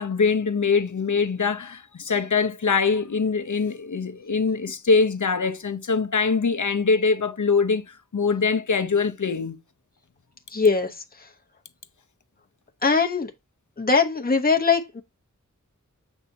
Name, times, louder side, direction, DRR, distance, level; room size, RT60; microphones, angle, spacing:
voice 1, 0.0-9.6, left 4 dB, 70° left, 0.8 m, -23 dB
voice 2, 10.5-11.0 12.8-13.3 13.8-15.0, left 4 dB, 30° left, 1.0 m, -21 dB
8.0 x 5.9 x 2.7 m
wide cardioid pair, 55°, 31 cm